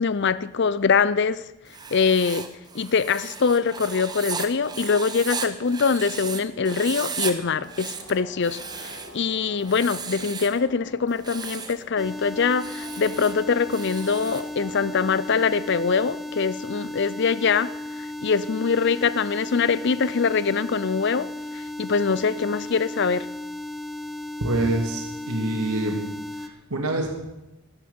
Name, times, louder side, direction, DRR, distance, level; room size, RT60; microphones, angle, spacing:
voice 1, 0.0-1.4 1.9-2.5 2.7-17.7 18.2-21.3 21.5-23.3, left 5 dB, 50° left, 0.5 m, -23 dB
Writing, 1.7-6.4 6.6-7.3 7.6-9.2 9.6-10.6 11.1-11.8 12.5-14.5, right 5 dB, 20° right, 0.9 m, -35 dB
sound 1, 7.2-15.2, equal, 30° left, 3.1 m, -48 dB
sound 2, 12.0-26.5, left 2 dB, ahead, 0.5 m, -35 dB
voice 2, 24.4-26.0 26.4-27.1, right 2 dB, 80° right, 2.5 m, -26 dB
12.5 x 10.0 x 7.0 m
head